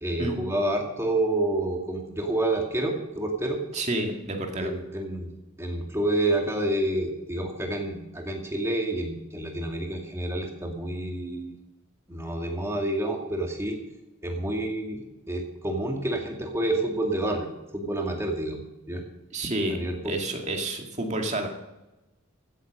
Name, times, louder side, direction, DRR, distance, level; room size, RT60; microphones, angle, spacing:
voice 1, 0.0-3.6 4.6-5.3 5.6-11.5 12.1-13.8 14.2-15.0 15.3-19.0 19.7-20.2, right 1 dB, 10° right, 1 dB, 2.2 m, -28 dB
voice 2, 3.7-4.7 19.3-19.8 20.0-21.5, right 1 dB, 30° right, 3 dB, 2.1 m, -29 dB
15.5 x 8.3 x 6.5 m, 0.98 s
head